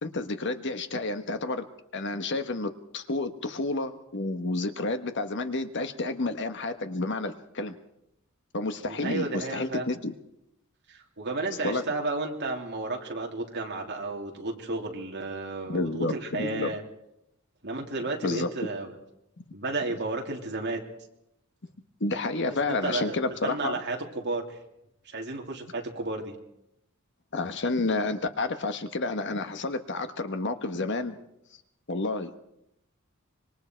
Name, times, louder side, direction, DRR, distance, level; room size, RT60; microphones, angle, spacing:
voice 1, 0.0-1.6 1.9-7.7 8.5-10.1 11.6-11.8 15.7-16.7 18.2-18.7 22.0-23.8 27.3-31.2 31.9-32.4, left 2 dB, 55° left, 8 dB, 1.4 m, -30 dB
voice 2, 8.8-9.9 10.9-16.8 17.6-18.9 19.5-20.8 22.7-23.1 23.4-24.6 25.0-26.3, right 2 dB, 55° right, 1 dB, 3.1 m, -32 dB
25.5 x 22.5 x 4.6 m, 0.81 s
head